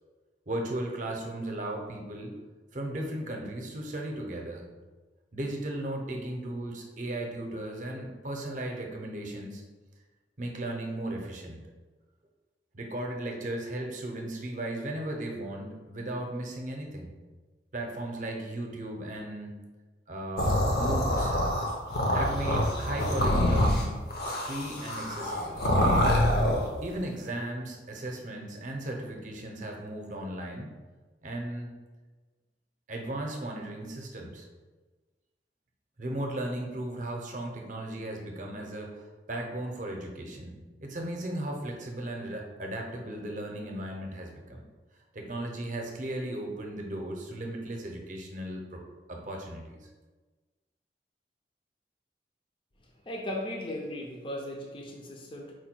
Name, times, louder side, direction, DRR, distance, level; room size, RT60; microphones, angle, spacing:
voice 1, 0.5-2.3 2.7-4.7 5.3-9.6 10.4-11.6 12.7-17.1 17.7-19.6 20.1-21.3 22.1-24.0 24.4-25.7 26.8-30.8 31.2-31.7 32.9-34.5 36.0-44.6 45.1-48.8 49.1-49.8, right 1 dB, 45° right, 1 dB, 0.7 m, -36 dB
sound 1, 20.4-26.7, left 1 dB, 60° left, 0.7 m, -26 dB
voice 2, 52.8-55.5, left 1 dB, 30° left, 0 dB, 0.5 m, -37 dB
4.6 x 2.2 x 4.4 m, 1.3 s
head